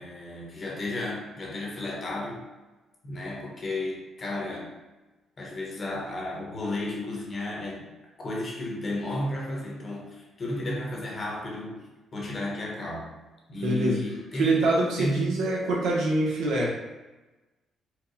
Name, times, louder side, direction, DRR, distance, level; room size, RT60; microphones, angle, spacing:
voice 1, 0.0-2.4 3.0-4.8 5.4-7.9 8.2-13.1 13.5-14.6 15.0-15.3, left 1 dB, 40° left, -2 dB, 1.1 m, -33 dB
voice 2, 13.6-14.0 14.4-16.7, right 2 dB, 85° right, -3 dB, 0.9 m, -25 dB
4.6 x 2.2 x 2.7 m, 1.1 s
cardioid pair, 90°, 0 cm